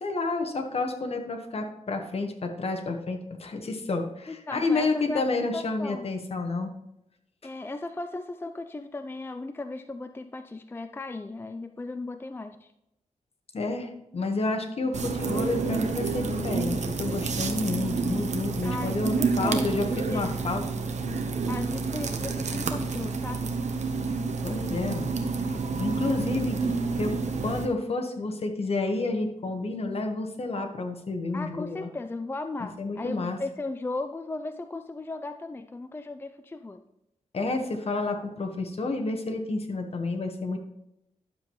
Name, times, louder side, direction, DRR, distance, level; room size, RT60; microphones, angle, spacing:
voice 1, 0.0-6.7 13.5-20.6 24.4-25.1 25.8-26.6 27.0-27.1 27.4-31.9 32.8-33.4 37.3-40.6, left 3 dB, 55° left, 4 dB, 1.2 m, -30 dB
voice 2, 4.3-6.1 7.4-12.7 18.6-20.3 21.5-23.6 31.3-36.8, left 2 dB, 20° left, 9 dB, 0.4 m, -36 dB
sound 1, 14.9-27.7, right 4 dB, 70° right, 0.9 m, -29 dB
11.0 x 7.2 x 3.1 m, 0.84 s
wide cardioid pair, 90°, 12 cm